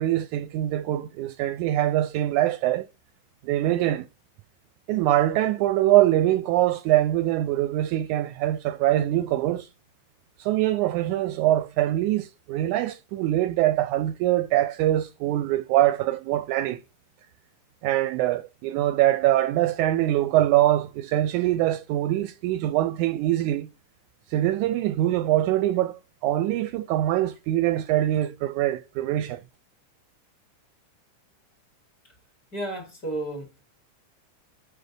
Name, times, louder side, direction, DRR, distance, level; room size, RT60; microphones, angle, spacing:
voice 1, 0.0-2.9 3.4-4.1 4.9-9.7 10.4-16.8 17.8-23.7 24.3-29.4, right 14 dB, 80° right, 1.8 m, -23 dB
voice 2, 32.5-33.6, right 1 dB, 30° left, 2.2 m, -33 dB
6.7 x 6.4 x 3.7 m
omnidirectional pair, 3.7 m